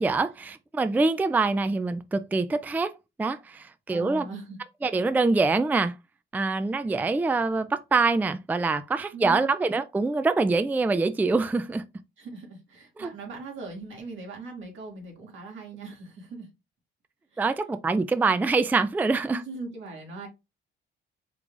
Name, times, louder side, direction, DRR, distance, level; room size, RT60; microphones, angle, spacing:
voice 1, 0.0-2.9 3.2-4.3 4.8-5.9 6.3-11.8 13.0-13.1 17.4-19.4, right 3 dB, 10° right, 0.3 m, -25 dB
voice 2, 3.9-4.6 9.1-9.5 12.2-16.5 17.3-17.5 19.3-20.3, right 3 dB, 75° right, 2.1 m, -40 dB
4.8 x 2.4 x 3.7 m
cardioid pair, 90°, 20 cm